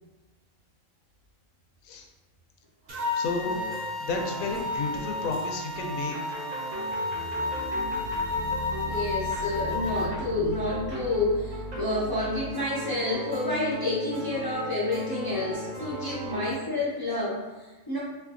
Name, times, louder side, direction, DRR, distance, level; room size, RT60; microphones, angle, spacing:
sound 1, 2.9-10.1, left 2 dB, 50° right, 0.8 m, -32 dB
voice 1, 3.1-3.6 4.0-6.2 16.0-16.2, left 4 dB, 75° left, 3 dB, 1.0 m, -32 dB
sound 2, 3.4-5.4 5.7-16.5, equal, 80° right, 1.4 m, -37 dB
voice 2, 8.9-18.0, left 2 dB, 35° left, -8 dB, 0.3 m, -29 dB
3.3 x 3.2 x 2.5 m, 1.2 s
omnidirectional pair, 1.5 m